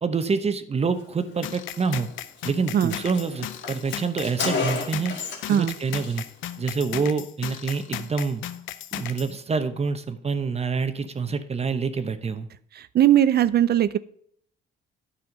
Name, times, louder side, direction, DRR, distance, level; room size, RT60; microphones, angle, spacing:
voice 1, 0.0-2.1 2.4-5.1 5.5-6.2 6.6-8.4 8.9-12.5, right 5 dB, 30° right, 10 dB, 0.9 m, -27 dB
sound 1, 1.4-9.3, left 12 dB, 85° left, 0.6 m, -36 dB
Car, 2.0-2.1 2.4-2.5 2.7-5.6 5.9-6.2, left 4 dB, 65° left, 1.9 m, -31 dB
voice 2, 12.8-14.0, right 11 dB, 55° right, 15 dB, 0.4 m, -19 dB
9.7 x 5.7 x 5.2 m, 0.64 s
cardioid pair, 90°, 20 cm